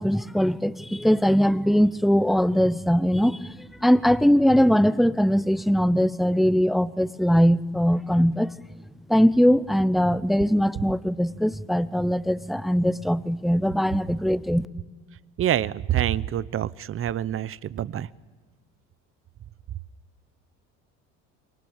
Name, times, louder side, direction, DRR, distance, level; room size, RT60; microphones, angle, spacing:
voice 1, 0.0-3.5 3.8-8.5 9.1-14.7, equal, ahead, 0.7 m, -21 dB
voice 2, 15.4-18.1, right 11 dB, 40° right, 0.8 m, -26 dB
27.5 x 23.0 x 7.3 m
supercardioid pair, 100°, 33 cm